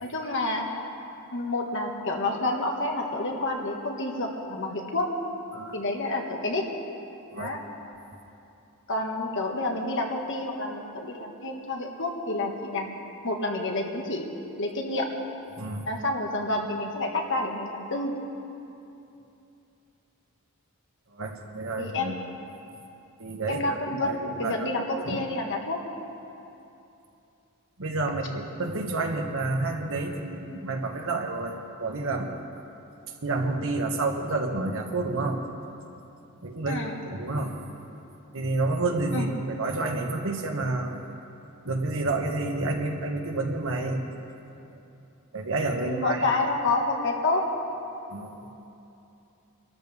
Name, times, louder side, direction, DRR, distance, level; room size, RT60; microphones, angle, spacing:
voice 1, 0.0-0.7 1.3-5.1 5.7-6.7 7.4-7.6 8.9-12.9 13.2-14.2 14.6-15.1 15.9-18.1 21.8-22.2 23.5-25.8 36.7-37.0 39.1-39.3 45.8-47.5, left 2 dB, 60° left, 1 dB, 1.8 m, -29 dB
voice 2, 21.1-22.2 23.2-23.7 24.0-25.2 27.8-32.3 33.2-35.4 36.4-37.6 38.3-41.0 41.6-44.0 45.3-46.2 48.1-48.4, right 2 dB, 65° right, 3 dB, 1.5 m, -29 dB
24.5 x 13.0 x 3.7 m, 2.8 s
head